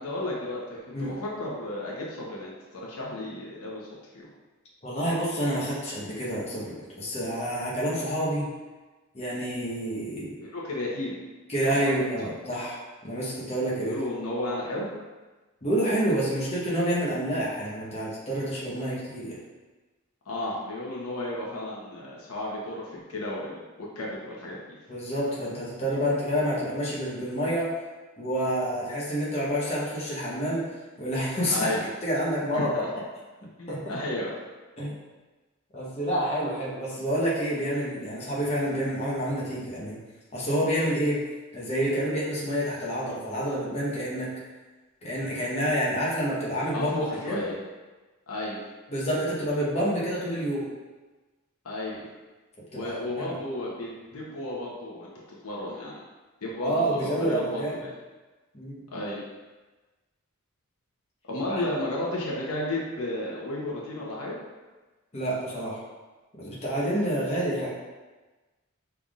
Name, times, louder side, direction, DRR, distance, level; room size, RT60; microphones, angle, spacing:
voice 1, 0.0-3.9 4.1-4.3 10.4-11.2 11.7-11.8 13.8-14.9 20.3-24.6 31.5-31.9 32.5-32.9 33.6-34.3 46.7-47.6 48.3-48.6 51.6-52.0 52.7-55.1 55.4-56.0 56.4-57.9 58.9-59.2 61.2-64.4, left 1 dB, 80° left, -4 dB, 1.0 m, -33 dB
voice 2, 4.8-8.5 9.1-10.3 11.5-12.8 13.0-14.0 15.6-19.4 24.9-27.7 28.2-30.7 31.0-31.7 32.0-32.8 33.7-33.9 34.8-34.9 35.7-40.0 40.3-41.2 41.5-44.3 45.0-47.0 47.2-47.5 48.9-50.7 52.7-53.3 54.1-54.2 56.6-57.8 58.5-58.8 61.5-61.6 65.1-65.8 66.4-67.7, equal, 30° left, -7 dB, 1.0 m, -28 dB
5.4 x 3.4 x 2.5 m, 1.2 s
head